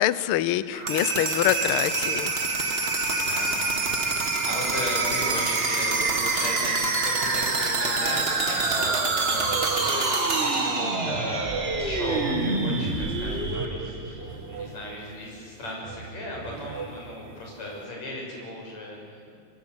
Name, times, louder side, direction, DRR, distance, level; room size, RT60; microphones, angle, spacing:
voice 1, 0.0-2.3 3.1-3.5, left 13 dB, 90° left, 15 dB, 1.2 m, -25 dB
sound 1, 0.7-14.6, right 3 dB, 30° right, 1.1 m, -26 dB
voice 2, 3.0-19.3, left 1 dB, 65° left, -1 dB, 7.6 m, -36 dB
sound 2, 8.6-17.9, right 4 dB, 70° right, 4.0 m, -42 dB
24.0 x 22.5 x 7.9 m, 2.4 s
omnidirectional pair, 3.4 m